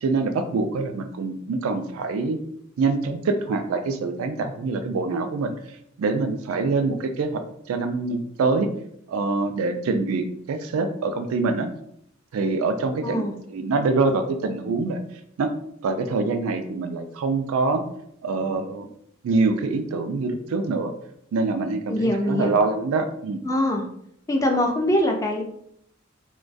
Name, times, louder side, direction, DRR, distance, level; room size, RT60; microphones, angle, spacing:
voice 1, 0.0-2.4 2.8-5.5 6.0-7.4 7.7-8.7 9.1-11.7 12.3-13.2 13.5-15.0 15.4-15.5 15.8-17.8 18.2-18.9 19.2-20.9 21.3-23.4, right 3 dB, 85° right, 7 dB, 0.3 m, -25 dB
voice 2, 13.0-13.4 21.9-22.6 23.4-23.9 24.3-25.4, left 1 dB, 15° left, 2 dB, 0.3 m, -23 dB
2.2 x 2.2 x 2.5 m, 0.71 s
head